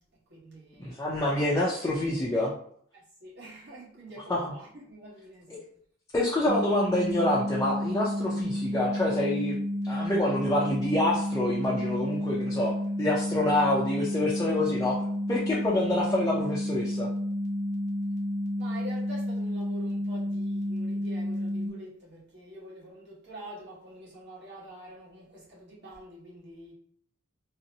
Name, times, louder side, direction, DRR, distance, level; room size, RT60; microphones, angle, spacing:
voice 1, 0.8-2.5 4.3-4.5 5.5-5.6 6.1-9.6 9.8-12.7 13.0-15.0 15.3-17.1, left 1 dB, 15° left, 0.5 m, -27 dB
voice 2, 3.2-4.2 4.9-5.4 18.6-21.9 22.3-25.1 25.8-26.7, right 1 dB, 55° right, 1.2 m, -45 dB
sound 1, 6.5-21.7, left 1 dB, 35° right, 0.6 m, -31 dB
3.9 x 2.0 x 2.7 m
head